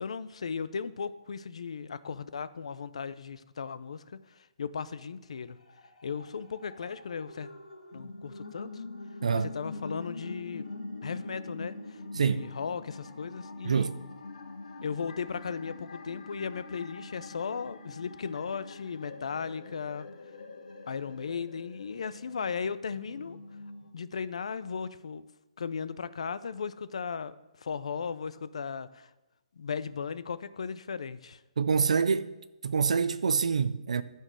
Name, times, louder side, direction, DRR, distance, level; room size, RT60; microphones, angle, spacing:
voice 1, 0.0-5.6 6.0-7.5 7.9-8.8 9.3-10.7 11.0-13.9 14.8-20.1 20.9-23.4 23.9-25.3 25.6-29.1 29.6-31.4, left 6 dB, 60° left, 0.5 m, -36 dB
sound 1, 5.4-23.9, left 3 dB, 85° left, 1.7 m, -44 dB
voice 2, 9.2-9.5 12.1-12.5 13.6-14.0 31.6-32.3 32.6-34.0, right 5 dB, 70° right, 0.4 m, -26 dB
12.0 x 4.5 x 6.2 m
hypercardioid pair, 180°, 4 cm